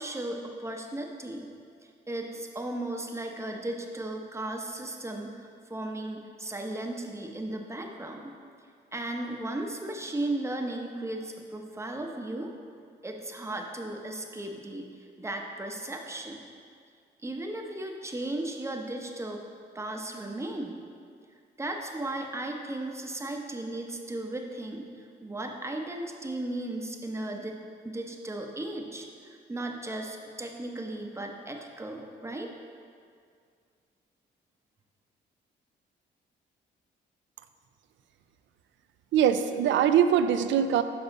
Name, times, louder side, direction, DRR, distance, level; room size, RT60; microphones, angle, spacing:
voice 1, 0.0-1.5 1.8-8.3 8.9-12.5 13.0-14.9 15.2-16.4 17.2-19.4 19.7-20.8 21.6-27.6 27.8-32.5, right 1 dB, 15° right, 2 dB, 0.7 m, -36 dB
voice 2, 39.1-40.8, right 9 dB, 70° right, 10 dB, 0.4 m, -22 dB
7.0 x 5.2 x 4.0 m, 2.2 s
cardioid pair, 90°, 20 cm